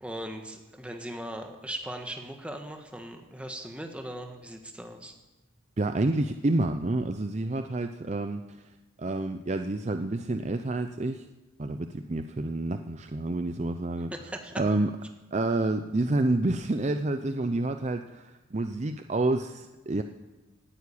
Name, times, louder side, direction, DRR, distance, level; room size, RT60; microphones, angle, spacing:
voice 1, 0.0-5.1 14.1-14.5, right 1 dB, 5° right, 4 dB, 1.4 m, -39 dB
voice 2, 5.8-8.4 9.0-11.3 11.6-14.1 14.6-14.9 15.3-20.0, right 2 dB, 35° right, 8 dB, 0.5 m, -28 dB
18.0 x 9.5 x 8.5 m, 1.1 s
head